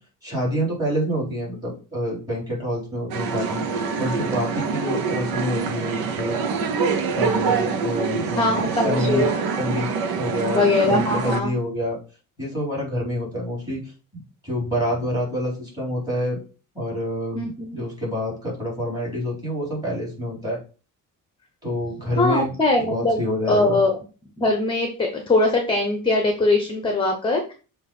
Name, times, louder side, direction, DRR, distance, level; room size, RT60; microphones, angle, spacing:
voice 1, 0.2-6.4 7.1-9.3 9.6-12.0 12.4-13.9 14.4-16.4 16.7-20.6 21.6-22.5 22.9-23.8, equal, 10° right, -5 dB, 3.9 m, -27 dB
sound 1, 3.1-11.4, right 5 dB, 90° right, 0.9 m, -25 dB
voice 2, 8.4-9.5 10.5-11.6 17.3-17.8 22.2-24.0 24.4-27.5, left 2 dB, 15° left, 3 dB, 0.9 m, -21 dB
7.2 x 2.7 x 5.4 m, 0.36 s
cardioid pair, 150°, 35 cm